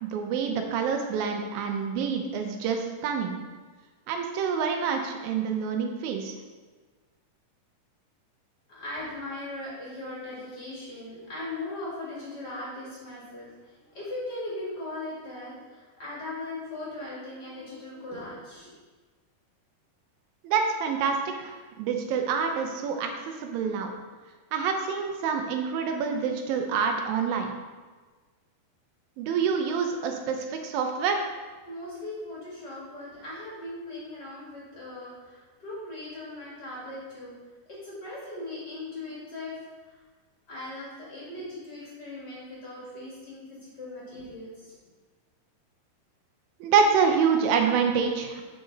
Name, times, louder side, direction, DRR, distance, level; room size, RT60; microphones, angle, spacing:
voice 1, 0.0-3.4 4.1-6.3 20.4-23.1 23.4-23.9 24.5-27.5 29.2-31.3 46.6-48.5, right 6 dB, 75° right, 4 dB, 2.3 m, -27 dB
voice 2, 8.7-18.7 31.7-37.3 37.7-39.5 40.5-44.7, left 2 dB, 40° left, -7 dB, 1.5 m, -39 dB
8.0 x 5.1 x 3.9 m, 1.4 s
omnidirectional pair, 4.5 m